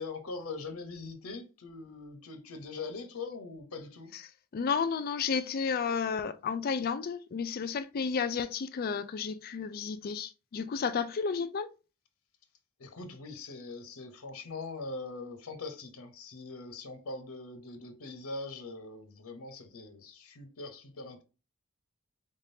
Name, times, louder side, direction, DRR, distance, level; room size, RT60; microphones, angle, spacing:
voice 1, 0.0-4.1 12.8-21.2, left 3 dB, 80° left, 0.8 m, -42 dB
voice 2, 4.5-11.7, left 6 dB, 45° left, 0.3 m, -32 dB
3.7 x 3.6 x 2.6 m
head